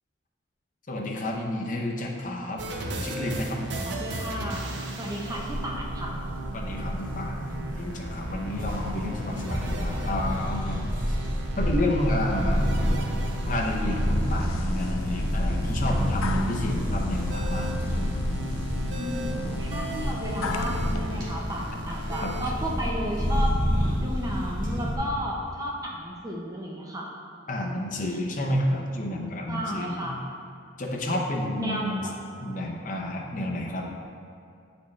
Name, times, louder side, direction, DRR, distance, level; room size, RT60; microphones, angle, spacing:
voice 1, 0.9-2.6 2.9-3.6 6.5-11.2 11.6-12.7 13.4-17.7 22.2-22.5 27.5-30.2 30.8-32.1 32.4-33.9, left 1 dB, 40° left, -1 dB, 0.7 m, -30 dB
sound 1, 2.6-22.5, right 1 dB, 65° right, 0.6 m, -37 dB
voice 2, 3.8-6.1 19.0-23.6 24.0-27.1 29.5-30.2 31.6-32.1 33.3-33.6, equal, 20° right, -2 dB, 0.7 m, -33 dB
sound 2, 5.2-25.0, equal, 45° right, 1.3 m, -29 dB
sound 3, 13.8-21.1, left 3 dB, 90° left, 0.4 m, -34 dB
8.4 x 4.3 x 3.2 m, 2.4 s
head